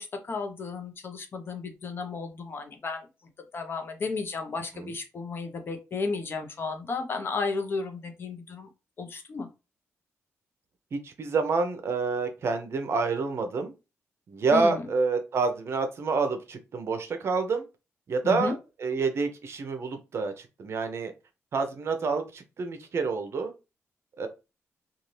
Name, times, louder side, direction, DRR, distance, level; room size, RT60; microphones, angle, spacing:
voice 1, 0.0-3.1 3.5-8.7 9.0-9.5 14.5-14.8 18.2-18.5, left 4 dB, 45° left, 0.7 m, -33 dB
voice 2, 10.9-13.7 14.3-17.6 18.1-18.5 18.8-21.1 21.5-23.5 24.2-24.3, right 4 dB, 55° right, 0.7 m, -28 dB
2.7 x 2.4 x 3.1 m
cardioid pair, 115°, 5 cm